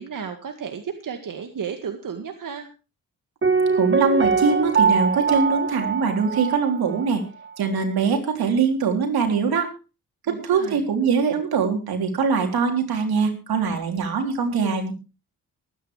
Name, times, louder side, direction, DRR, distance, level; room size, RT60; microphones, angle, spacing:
voice 1, 0.0-2.7 10.3-10.8, right 6 dB, 60° right, 5 dB, 1.9 m, -33 dB
Piano, 3.4-7.2 7.4-7.5, right 5 dB, 35° right, 1.4 m, -22 dB
voice 2, 3.8-7.2 7.6-9.7 10.3-14.9, right 5 dB, 85° right, 3 dB, 3.7 m, -22 dB
23.5 x 9.6 x 3.3 m, 0.32 s
cardioid pair, 70°, 36 cm